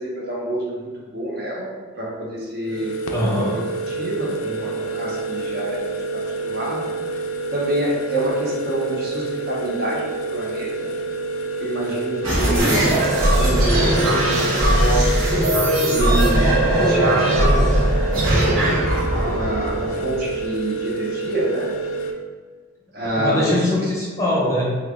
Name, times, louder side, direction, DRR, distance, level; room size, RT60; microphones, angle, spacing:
voice 1, 0.0-2.9 3.3-3.5 3.9-5.8 6.1-6.8 7.5-10.7 11.6-12.9 13.4-15.2 15.9-18.0 19.3-21.7 22.9-23.7, right 1 dB, 50° right, -4 dB, 0.7 m, -27 dB
sound 1, 2.6-22.1, right 3 dB, 85° left, 0.4 m, -28 dB
voice 2, 3.1-3.6 23.1-24.6, left 1 dB, 15° left, -5 dB, 0.6 m, -22 dB
sound 2, 12.2-20.4, right 1 dB, 85° right, 0.9 m, -19 dB
3.1 x 2.4 x 3.5 m, 1.4 s
head